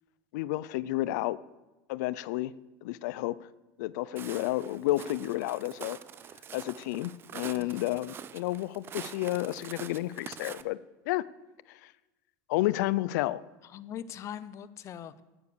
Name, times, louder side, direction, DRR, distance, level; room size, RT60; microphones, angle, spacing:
voice 1, 0.3-1.4 1.9-2.5 2.8-3.5 3.8-6.0 6.5-10.8 11.1-11.2 11.7-11.9 12.5-13.4, left 17 dB, 70° left, 18 dB, 0.5 m, -31 dB
Walk footsteps, 4.2-10.6, right 8 dB, 25° right, 0.5 m, -45 dB
voice 2, 7.5-8.0 13.6-15.2, left 9 dB, 30° left, 15 dB, 0.7 m, -42 dB
13.0 x 9.4 x 6.8 m, 1.1 s
supercardioid pair, 155°, 10 cm